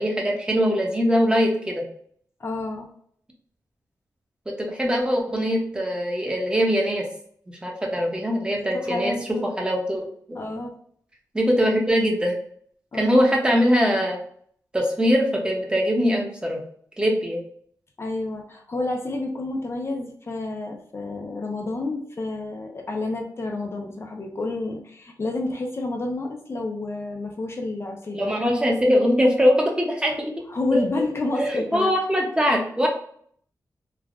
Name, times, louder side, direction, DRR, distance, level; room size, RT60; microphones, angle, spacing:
voice 1, 0.0-1.8 4.7-7.1 7.5-9.1 9.4-10.1 11.3-12.3 12.9-14.2 14.7-16.6 17.0-17.4 28.1-30.3 30.7-30.8 31.4-32.9, equal, 15° right, 0 dB, 0.7 m, -22 dB
voice 2, 2.4-2.9 8.5-9.4 10.3-10.7 12.9-13.1 18.0-28.3 30.5-32.0, left 2 dB, 40° left, 2 dB, 0.4 m, -30 dB
3.2 x 2.1 x 2.4 m, 0.62 s
wide cardioid pair, 95°, 7 cm